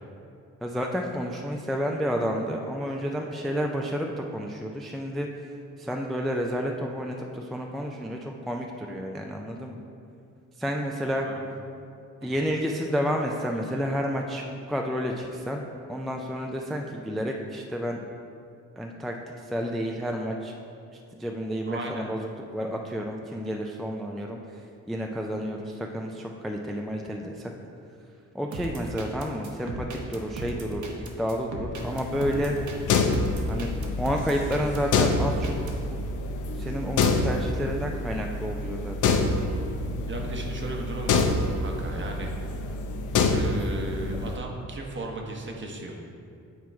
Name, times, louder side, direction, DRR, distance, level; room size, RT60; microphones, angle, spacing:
voice 1, 0.6-5.3 5.8-9.8 10.6-11.3 12.2-15.6 15.9-18.0 18.8-19.2 19.4-20.5 20.9-24.6 24.9-27.5 28.3-32.6 33.5-33.7 34.0-35.5 35.9-36.0 36.6-39.0, equal, ahead, 1 dB, 0.3 m, -30 dB
voice 2, 21.7-22.1 40.1-41.3 41.6-42.3 43.2-46.0, right 2 dB, 40° right, 1 dB, 0.9 m, -35 dB
sound 1, 28.5-35.8, right 2 dB, 70° right, 0.8 m, -37 dB
Shower leaking dripping, 31.8-44.4, left 3 dB, 80° left, 0.6 m, -27 dB
8.3 x 3.0 x 4.6 m, 2.5 s
cardioid pair, 95°, 30 cm